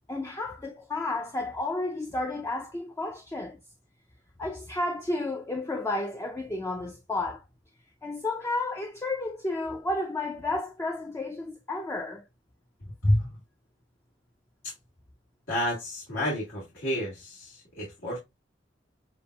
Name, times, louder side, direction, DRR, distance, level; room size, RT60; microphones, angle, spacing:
voice 1, 0.1-3.6 4.4-7.4 8.0-12.2, left 2 dB, 15° left, 0.4 m, -32 dB
voice 2, 13.0-13.3 14.6-14.7 15.5-18.2, left 1 dB, 85° left, 1.8 m, -29 dB
7.0 x 2.5 x 2.2 m
head